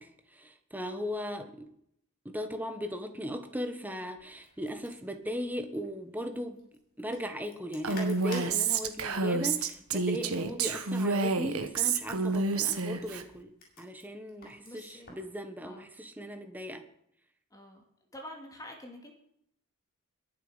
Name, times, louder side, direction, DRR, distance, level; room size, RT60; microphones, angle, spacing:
voice 1, 0.0-1.7 2.2-6.6 7.0-13.5 13.8-16.8, equal, 10° right, 7 dB, 1.5 m, -38 dB
sound 1, 4.2-15.3, left 2 dB, 45° left, 6.5 m, -53 dB
Female speech woman speaking, 7.8-13.2, right 4 dB, 90° right, 1.4 m, -29 dB
voice 2, 9.2-9.8 14.6-15.1 15.6-15.9 17.5-17.8 18.1-19.1, left 1 dB, 15° left, 2 dB, 2.5 m, -48 dB
22.0 x 7.8 x 5.1 m, 0.70 s
head